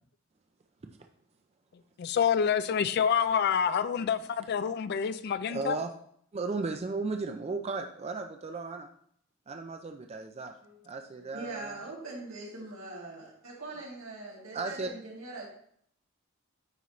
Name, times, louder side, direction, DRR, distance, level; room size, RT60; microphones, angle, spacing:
voice 1, 2.0-5.8, left 7 dB, 50° left, 13 dB, 0.3 m, -27 dB
voice 2, 5.5-5.9 6.3-8.9 9.5-10.5 10.8-11.8 14.5-14.9, right 3 dB, 30° right, 4 dB, 0.4 m, -35 dB
voice 3, 10.6-15.5, right 2 dB, 85° right, -4 dB, 2.3 m, -42 dB
9.1 x 4.1 x 3.1 m, 0.65 s
head